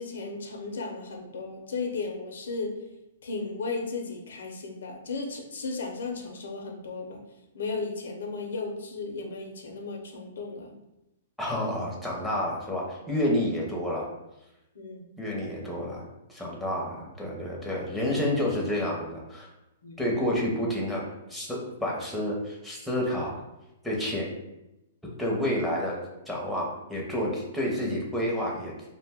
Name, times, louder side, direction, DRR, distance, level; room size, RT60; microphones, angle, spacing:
voice 1, 0.0-2.8 3.2-7.2 7.5-10.7 14.7-15.1 19.8-20.0, left 3 dB, 85° left, 2 dB, 0.5 m, -35 dB
voice 2, 11.4-14.1 15.2-19.5 20.0-21.0 21.3-23.4 23.8-24.3 25.2-26.0 26.3-28.7, left 1 dB, ahead, -4 dB, 0.6 m, -29 dB
2.5 x 2.1 x 3.4 m, 0.93 s
hypercardioid pair, 155°, 0 cm